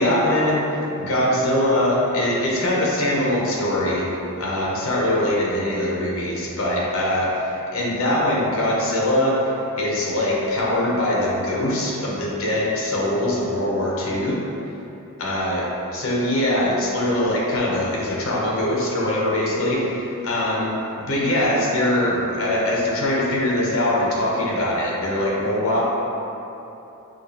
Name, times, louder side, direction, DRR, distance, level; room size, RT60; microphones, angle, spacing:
voice 1, 0.0-4.1 4.4-14.4 15.2-20.7 21.0-25.8, left 1 dB, 65° left, -4 dB, 0.7 m, -22 dB
5.0 x 2.3 x 2.6 m, 3.0 s
head